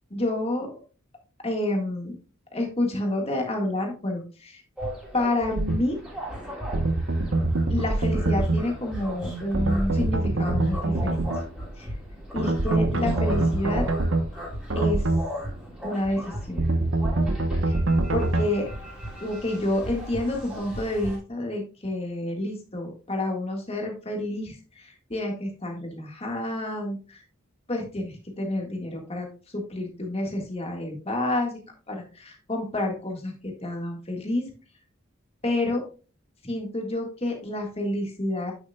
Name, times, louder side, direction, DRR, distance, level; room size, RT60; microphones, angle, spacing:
voice 1, 0.1-0.7 1.4-2.1 2.5-4.6 5.1-6.0 7.7-11.2 11.8-11.9 12.3-13.9 14.7-15.1 15.8-16.6 17.7-17.8 18.1-18.7 19.2-27.2 27.7-29.3 29.5-31.6 31.9-34.5 35.4-35.8 36.4-38.5, left 1 dB, 30° left, 2 dB, 1.8 m, -29 dB
sound 1, 4.8-21.2, equal, 5° right, 3.2 m, -37 dB
sound 2, 5.6-5.8 6.7-8.6 9.5-11.4 12.4-14.2 14.7-15.2 16.6-18.5, right 2 dB, 65° right, 1.0 m, -24 dB
8.8 x 7.0 x 2.3 m, 0.35 s
head